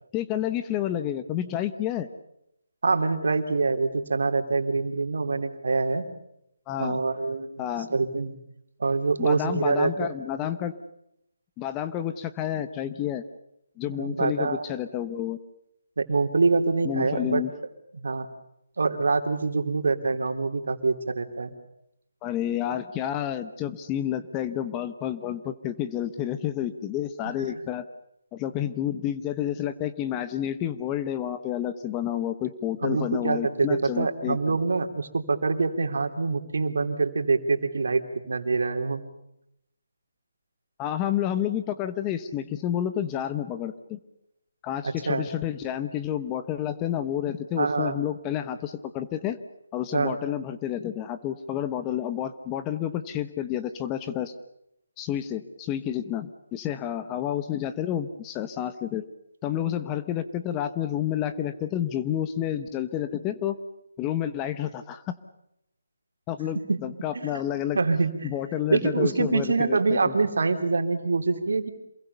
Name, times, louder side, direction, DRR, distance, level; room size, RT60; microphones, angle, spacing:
voice 1, 0.1-2.1 6.7-7.0 7.6-7.9 9.2-10.7 11.6-13.2 13.8-15.4 16.8-17.5 22.2-27.9 28.3-34.6 40.8-44.0 44.6-49.4 49.7-54.3 55.0-59.1 59.4-63.6 64.0-65.1 66.3-67.8 68.2-70.1, left 11 dB, 15° left, 11 dB, 1.1 m, -30 dB
voice 2, 2.8-6.1 6.8-7.6 7.9-8.4 8.8-10.1 13.9-14.7 16.0-17.5 17.9-18.3 18.8-21.5 32.8-39.0 44.8-45.3 47.6-48.0 49.9-50.2 66.5-66.8 67.1-67.4 67.7-68.3 68.7-71.7, right 4 dB, 70° right, 7 dB, 3.2 m, -25 dB
27.5 x 21.5 x 7.0 m, 0.79 s
hypercardioid pair, 160°, 0 cm